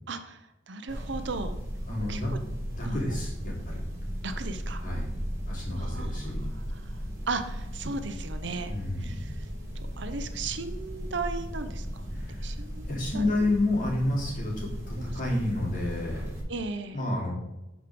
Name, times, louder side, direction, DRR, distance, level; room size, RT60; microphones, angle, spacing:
voice 1, 0.1-1.6 2.1-2.4 2.8-3.0 4.2-4.8 5.8-6.9 7.3-8.7 9.0-9.5 10.0-12.0 12.4-13.3 15.0-15.1 16.5-17.0, right 3 dB, 60° right, 8 dB, 0.7 m, -36 dB
sound 1, 0.9-16.4, equal, 15° right, 3.0 m, -36 dB
voice 2, 1.9-2.3 2.7-3.8 4.8-5.1 5.5-6.5 8.7-9.2 12.1-12.5 12.9-16.2 16.9-17.3, left 2 dB, 45° left, -3 dB, 3.2 m, -30 dB
11.5 x 5.1 x 3.8 m, 1.0 s
head